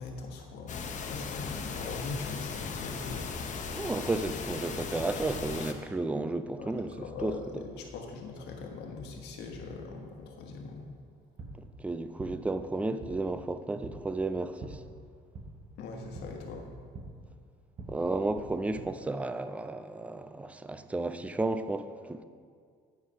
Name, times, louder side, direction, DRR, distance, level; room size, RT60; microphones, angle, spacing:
voice 1, 0.0-3.7 6.6-10.9 15.8-16.6, left 4 dB, 80° left, 1 dB, 1.4 m, -41 dB
sound 1, 0.7-5.7, left 5 dB, 45° left, 0.8 m, -37 dB
voice 2, 3.7-7.3 11.8-14.8 17.9-22.2, right 2 dB, 10° right, 10 dB, 0.4 m, -33 dB
sound 2, 11.1-18.8, right 2 dB, 45° right, 1.3 m, -47 dB
9.4 x 4.8 x 5.6 m, 2.1 s
cardioid pair, 110°, 17 cm